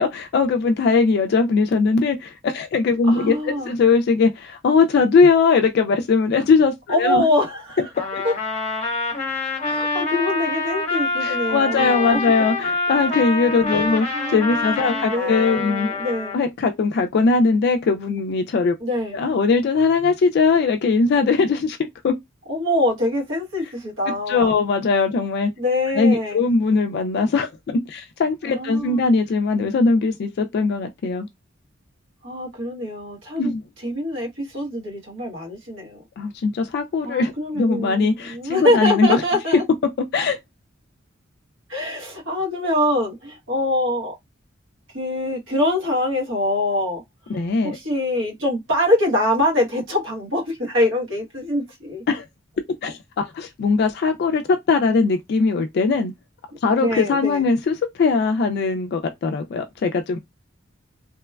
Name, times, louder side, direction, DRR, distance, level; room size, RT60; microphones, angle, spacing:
voice 1, 0.0-7.2 11.2-15.9 16.3-18.7 19.1-21.8 22.0-22.1 24.3-25.5 25.9-31.3 33.4-33.6 36.2-39.2 40.1-40.4 47.3-47.8 52.1-52.3 52.8-56.1 56.6-60.2, left 4 dB, 55° left, 0.3 m, -20 dB
voice 2, 3.0-3.7 6.9-7.8 8.2-8.3 9.6-12.2 13.7-16.3 18.8-19.2 22.5-24.6 25.6-26.5 28.4-29.1 32.2-33.5 33.8-36.0 37.0-39.6 41.7-44.1 44.9-47.0 47.6-52.0 56.7-57.4, left 1 dB, 70° right, 1.1 m, -24 dB
Trumpet, 7.9-16.4, left 3 dB, 35° left, 0.7 m, -26 dB
2.9 x 2.1 x 2.2 m
head